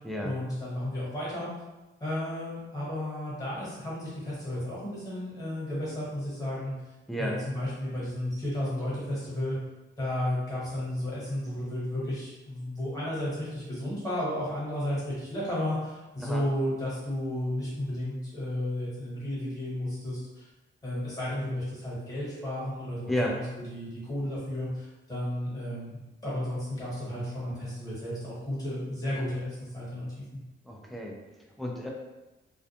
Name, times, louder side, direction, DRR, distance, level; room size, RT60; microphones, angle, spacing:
voice 1, 0.2-1.5 2.0-6.7 7.2-9.6 10.0-20.5 20.8-23.1 23.7-26.0 26.2-30.1, left 1 dB, 15° left, -8 dB, 1.1 m, -33 dB
voice 2, 7.1-7.4 16.2-16.4 23.1-23.4 30.6-31.2 31.6-31.9, equal, ahead, -1 dB, 0.3 m, -31 dB
2.3 x 2.1 x 2.8 m, 1.1 s
wide cardioid pair, 155°, 20 cm